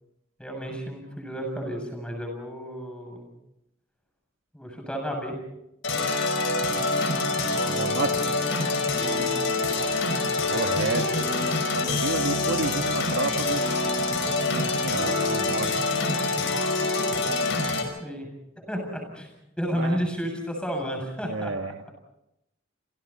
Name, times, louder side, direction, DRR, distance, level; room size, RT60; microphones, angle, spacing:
voice 1, 0.4-3.3 4.5-5.4 9.1-9.5 18.0-18.3 18.6-19.3 19.6-21.5, equal, 5° left, 2 dB, 7.6 m, -32 dB
sound 1, 5.8-17.8, left 3 dB, 70° left, 5.4 m, -25 dB
voice 2, 7.6-8.4 10.5-11.3 11.7-13.7 14.5-15.8 19.7-20.0 21.2-21.9, right 3 dB, 75° right, 6 dB, 1.6 m, -31 dB
29.0 x 29.0 x 4.3 m, 0.86 s
head